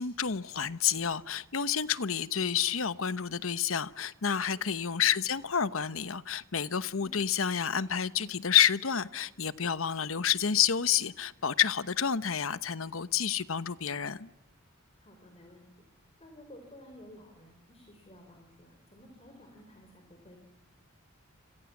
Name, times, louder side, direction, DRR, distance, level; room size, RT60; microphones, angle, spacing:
voice 1, 0.0-14.3, left 8 dB, 75° left, 1.0 m, -29 dB
voice 2, 4.5-4.9 6.9-7.2 15.0-15.7 16.0-20.4, left 1 dB, 30° left, 4.6 m, -54 dB
29.5 x 26.5 x 7.3 m
head